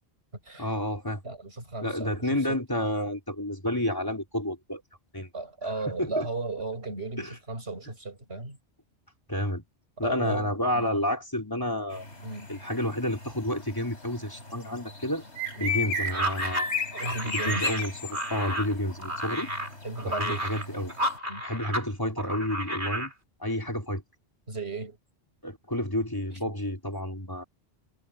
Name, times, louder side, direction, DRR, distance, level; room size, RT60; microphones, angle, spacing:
voice 1, 0.6-1.2 1.8-4.8 5.1-5.3 6.0-6.3 7.2-7.3 9.3-9.6 10.0-12.1 12.5-15.2 15.6-16.7 17.0-19.5 20.0-20.9 21.4-23.1 23.4-24.0 25.4-27.4, left 1 dB, 20° left, 3.7 m, -30 dB
voice 2, 1.2-2.6 5.3-8.6 10.0-10.9 12.2-12.5 15.5-15.8 17.0-17.7 19.8-20.5 21.3-21.4 24.5-25.0 26.3-26.4, right 3 dB, 70° right, 6.8 m, -35 dB
sound 1, 11.9-21.2, left 2 dB, 90° left, 6.4 m, -36 dB
sound 2, 16.1-21.9 22.2-23.1, right 1 dB, 50° right, 4.8 m, -32 dB
omnidirectional pair, 1.1 m